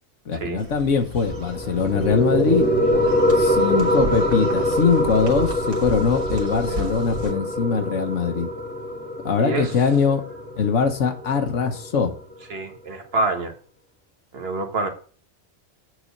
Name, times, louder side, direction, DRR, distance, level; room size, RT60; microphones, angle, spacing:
voice 1, 0.3-2.7 3.3-8.5 9.2-10.2 10.6-12.1, left 5 dB, 90° left, 1.4 m, -22 dB
sound 1, 0.6-7.3, equal, 85° right, 2.0 m, -35 dB
sound 2, 1.2-12.2, left 1 dB, 10° left, 1.6 m, -24 dB
voice 2, 9.4-9.7 12.5-13.5 14.3-14.9, right 3 dB, 55° right, 1.5 m, -26 dB
8.1 x 4.2 x 6.5 m
omnidirectional pair, 1.2 m